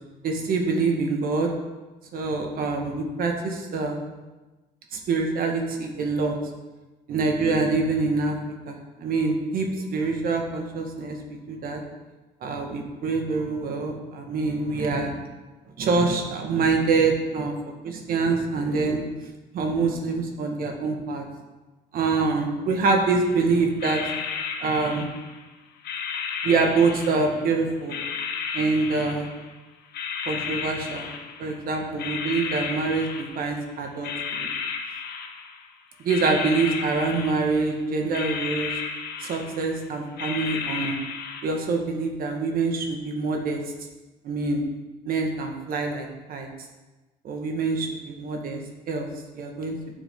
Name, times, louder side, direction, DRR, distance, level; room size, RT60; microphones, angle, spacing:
voice 1, 0.2-1.5 2.1-4.1 4.9-6.4 7.1-8.4 8.7-9.7 9.9-11.8 12.4-15.1 15.8-17.5 17.8-19.0 19.5-21.2 21.9-24.0 24.6-25.1 26.4-28.0 28.5-29.3 30.3-31.1 31.4-33.1 33.4-34.5 36.0-38.7 39.2-41.0 41.4-43.6 44.2-44.6 45.1-46.5 47.2-48.6 48.9-49.1 49.4-49.8, right 4 dB, 60° right, 2 dB, 1.7 m, -25 dB
sound 1, 23.2-23.4 23.8-25.4 25.8-27.5 27.9-29.5 29.9-31.6 32.0-33.6 34.0-35.7 36.0-37.8 38.1-39.8 40.2-41.4, left 6 dB, 70° left, 1.3 m, -33 dB
11.5 x 7.0 x 3.8 m, 1.2 s
cardioid pair, 110°, 17 cm